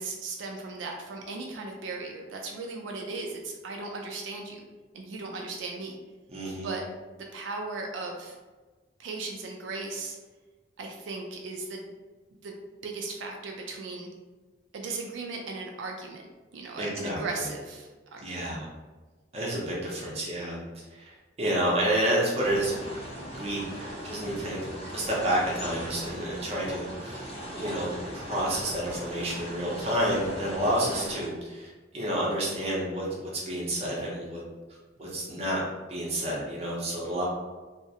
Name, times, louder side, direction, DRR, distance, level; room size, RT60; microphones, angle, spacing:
voice 1, 0.0-4.6 4.9-5.9 6.6-6.8 7.2-8.4 9.0-10.2 10.8-11.8 12.4-12.6 12.8-14.1 14.7-16.2 16.5-18.5 30.9-31.2, right 3 dB, 85° right, 1 dB, 0.3 m, -37 dB
voice 2, 6.3-6.7 16.8-17.5 18.2-18.7 19.3-20.6 20.9-22.7 23.1-24.6 24.9-27.3 27.6-34.4 35.0-35.6 35.9-37.3, right 1 dB, 35° right, -4 dB, 0.6 m, -30 dB
sound 1, 22.4-31.3, equal, 35° left, 0.7 m, -39 dB
2.4 x 2.0 x 2.7 m, 1.3 s
head